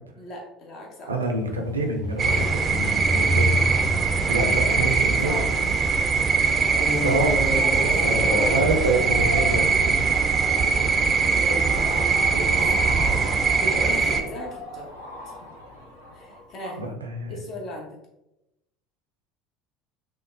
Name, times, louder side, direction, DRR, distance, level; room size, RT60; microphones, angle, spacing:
voice 1, 0.2-1.1 4.3-5.6 7.5-8.0 11.3-13.2 13.6-14.9 16.1-16.8 17.3-18.0, left 1 dB, 45° left, 0 dB, 0.9 m, -37 dB
voice 2, 1.1-3.6 4.3-5.4 7.0-7.4 7.8-10.2 12.3-13.1 16.8-17.4, right 2 dB, 85° right, 3 dB, 0.5 m, -27 dB
sound 1, 1.2-5.9 6.7-9.2 9.9-10.0, equal, 15° left, 1.1 m, -29 dB
sound 2, 2.2-14.2, right 5 dB, 35° right, 0.4 m, -22 dB
sound 3, 7.1-16.8, left 1 dB, 80° left, 0.7 m, -38 dB
5.6 x 2.1 x 2.6 m, 0.89 s
figure-of-eight pair, 65°, 0 cm